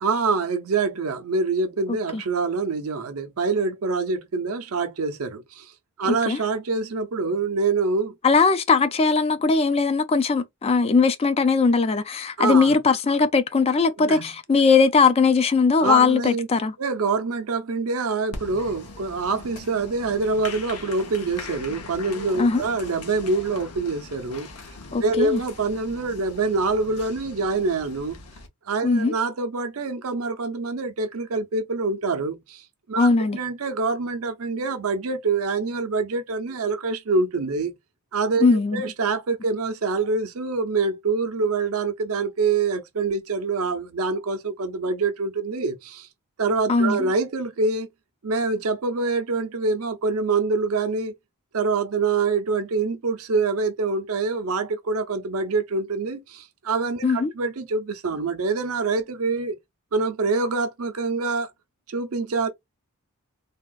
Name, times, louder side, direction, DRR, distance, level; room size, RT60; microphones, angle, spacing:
voice 1, 0.0-5.7 6.0-8.1 12.4-12.8 14.0-14.3 15.8-16.5 16.8-24.5 25.0-28.2 28.7-37.7 38.1-46.1 46.4-47.9 48.2-51.1 51.5-59.5 59.9-61.5 61.9-62.5, right 4 dB, 70° right, 0.6 m, -25 dB
voice 2, 8.2-16.7 22.4-22.6 24.9-25.4 28.8-29.1 33.0-33.4 38.4-38.8 46.7-47.1 57.0-57.3, left 4 dB, 25° left, 0.3 m, -19 dB
Applause, 18.3-28.5, left 3 dB, 85° left, 0.8 m, -40 dB
3.4 x 2.3 x 2.3 m
head